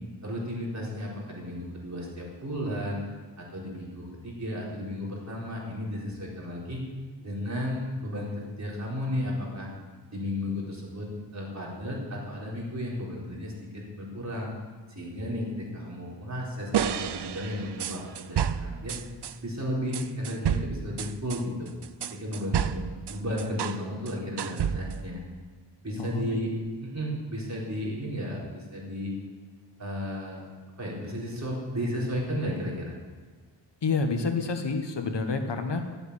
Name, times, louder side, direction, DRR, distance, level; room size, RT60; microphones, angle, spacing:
voice 1, 0.2-3.0 3.4-6.8 7.2-9.7 10.1-14.5 14.9-19.0 19.4-21.7 22.1-25.2 25.8-26.5 26.8-29.1 29.8-30.5 30.8-32.9, equal, 40° right, -4 dB, 4.3 m, -34 dB
sound 1, 16.7-19.4 19.9-23.8 24.1-25.1, right 8 dB, 65° right, 0.6 m, -30 dB
voice 2, 26.0-26.4 33.8-35.8, left 4 dB, 65° left, 6 dB, 1.4 m, -28 dB
13.0 x 8.1 x 8.3 m, 1.4 s
wide cardioid pair, 95°, 44 cm